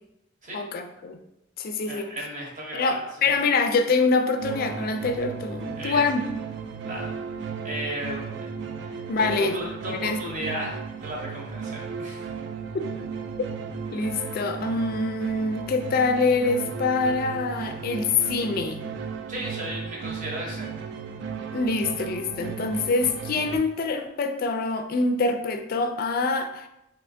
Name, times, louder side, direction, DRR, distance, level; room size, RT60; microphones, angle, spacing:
voice 1, 0.5-1.2 1.6-2.1 2.7-6.2 9.1-9.5 10.0-10.2 12.7-12.9 13.9-18.8 21.5-26.7, left 3 dB, 50° left, 7 dB, 0.3 m, -25 dB
voice 2, 1.9-3.3 5.8-6.0 6.8-7.2 7.6-12.2 19.3-20.7, equal, 40° right, -2 dB, 0.8 m, -35 dB
sound 1, 4.4-23.6, right 6 dB, 65° right, 0.3 m, -35 dB
3.2 x 2.9 x 2.6 m, 0.85 s
head